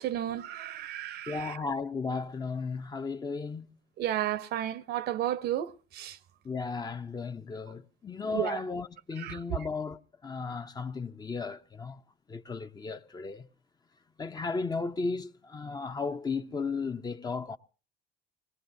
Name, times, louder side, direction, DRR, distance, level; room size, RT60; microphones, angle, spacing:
voice 1, 0.0-1.6 4.0-6.2 8.3-8.6 9.2-9.4, right 12 dB, 75° right, 0.8 m, -33 dB
voice 2, 1.3-3.8 6.4-12.0 12.3-13.4 14.2-17.6, left 4 dB, 25° left, 0.7 m, -35 dB
26.5 x 19.0 x 2.7 m
cardioid pair, 110°, 17 cm